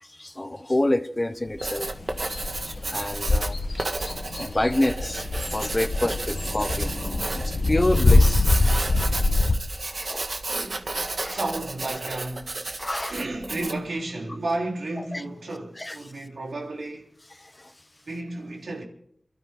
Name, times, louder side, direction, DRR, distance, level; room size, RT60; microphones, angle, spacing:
voice 1, 0.0-1.9 2.7-3.6 4.4-6.9 7.4-8.5 9.8-10.3 11.2-11.4 12.7-13.1 15.1-15.2 15.8-16.0 17.4-17.7, left 1 dB, 25° left, 0.9 m, -28 dB
Writing, 1.4-13.9, right 2 dB, 60° right, 1.7 m, -32 dB
sound 1, 1.6-9.6, left 2 dB, 65° left, 1.2 m, -24 dB
voice 2, 8.9-9.3 10.5-12.6 13.1-17.1 18.1-18.8, right 2 dB, 90° right, 3.7 m, -33 dB
28.5 x 13.0 x 3.8 m
wide cardioid pair, 75°, 0 cm